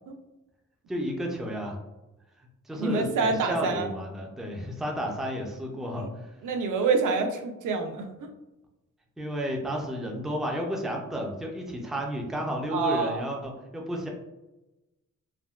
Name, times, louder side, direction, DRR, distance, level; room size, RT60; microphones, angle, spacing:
voice 1, 0.9-1.8 2.4-6.4 9.2-14.1, equal, ahead, 1 dB, 0.3 m, -32 dB
voice 2, 2.8-3.9 6.0-6.1 6.4-8.3 12.7-13.2, right 4 dB, 70° right, 4 dB, 0.5 m, -27 dB
3.4 x 2.1 x 2.2 m, 0.98 s
wide cardioid pair, 155°, 32 cm